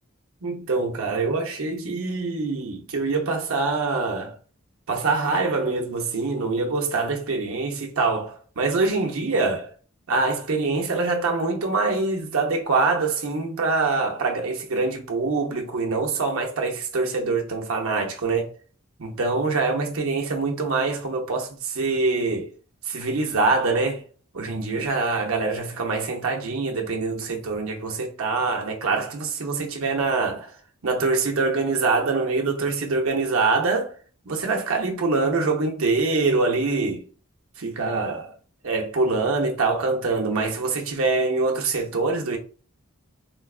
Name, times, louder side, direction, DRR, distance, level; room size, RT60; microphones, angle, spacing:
voice 1, 0.4-4.3 4.9-9.7 10.1-18.5 19.0-22.5 22.9-24.0 24.3-30.5 30.8-33.9 34.3-37.0 37.6-38.3 38.6-42.4, right 3 dB, 80° right, 0.7 m, -24 dB
3.8 x 2.3 x 2.4 m
head